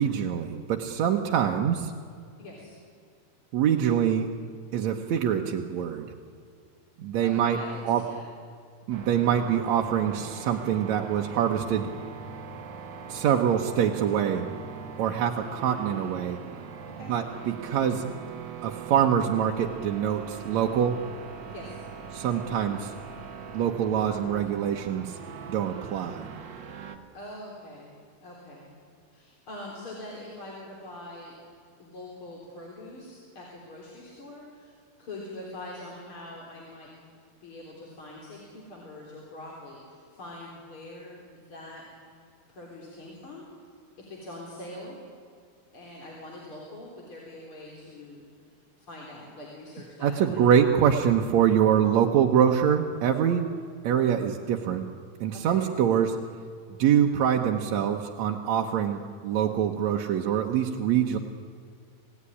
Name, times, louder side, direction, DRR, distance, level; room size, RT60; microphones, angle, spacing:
voice 1, 0.0-1.9 3.5-4.3 4.7-6.1 7.0-7.6 7.8-8.0 8.9-11.9 13.1-14.5 15.0-16.4 17.1-18.0 18.6-21.0 22.1-22.9 23.5-25.2 25.5-26.2 50.0-53.5 53.8-54.8 55.2-56.2 56.8-61.2, right 9 dB, 65° right, 2 dB, 1.9 m, -24 dB
voice 2, 2.4-2.7 7.2-8.2 16.9-17.1 21.5-21.8 27.1-27.9 28.2-28.7 29.1-31.3 31.8-34.7 35.0-36.9 37.4-41.8 42.5-43.5 44.0-45.0 45.7-48.2 48.8-50.5 55.3-55.6, left 1 dB, 35° left, -3 dB, 4.3 m, -43 dB
sound 1, 8.9-27.0, right 6 dB, 85° right, 1.0 m, -41 dB
26.5 x 17.5 x 10.0 m, 2.2 s
omnidirectional pair, 4.3 m